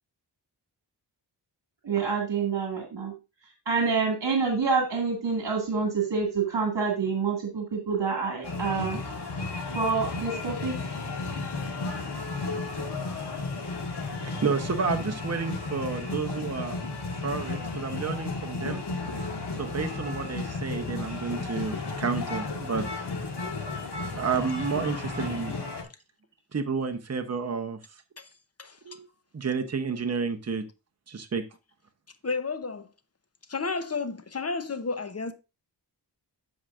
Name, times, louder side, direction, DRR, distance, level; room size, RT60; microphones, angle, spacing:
voice 1, 1.8-3.1 3.7-9.0 9.7-10.9, right 5 dB, 70° right, 2.2 m, -27 dB
sound 1, 8.4-25.8, left 3 dB, 70° left, 2.0 m, -33 dB
voice 2, 14.4-16.8 17.2-18.8 19.6-22.8 24.1-25.5 26.5-27.8 28.8-29.0 29.3-30.6 31.1-31.4, right 5 dB, 35° right, 0.9 m, -30 dB
voice 3, 28.6-29.0 32.2-32.9 33.5-35.3, left 4 dB, 35° left, 0.9 m, -32 dB
13.5 x 4.9 x 2.5 m
wide cardioid pair, 100°, 42 cm